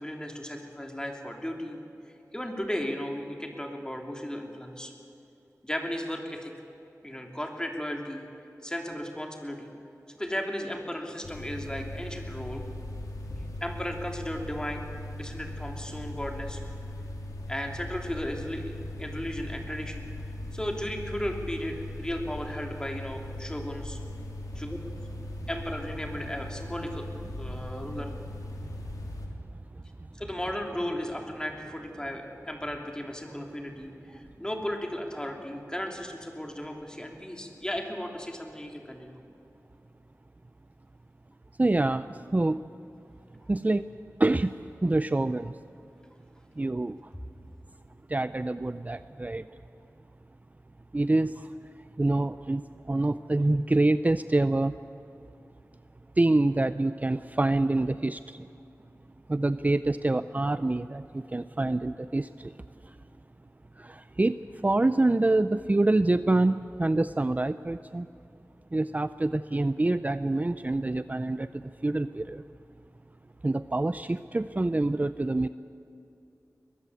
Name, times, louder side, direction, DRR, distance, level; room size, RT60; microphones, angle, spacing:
voice 1, 0.0-1.8 2.3-4.9 5.6-6.5 7.0-8.2 8.6-9.7 10.2-12.6 13.3-14.8 15.1-16.6 17.5-20.1 20.5-24.0 24.5-24.8 25.5-27.1 27.4-28.1 30.2-39.1, equal, 15° left, 2 dB, 3.1 m, -35 dB
sound 1, 11.2-29.3, left 1 dB, 90° left, 3.1 m, -39 dB
voice 2, 41.6-42.6 43.5-43.9 44.2-45.6 46.6-47.0 48.1-49.5 50.9-51.5 52.0-54.7 56.2-58.5 59.3-62.5 63.8-68.1 68.7-72.4 73.4-75.5, right 2 dB, 25° right, 13 dB, 0.5 m, -26 dB
22.0 x 21.5 x 8.3 m, 2.8 s
wide cardioid pair, 75°, 6 cm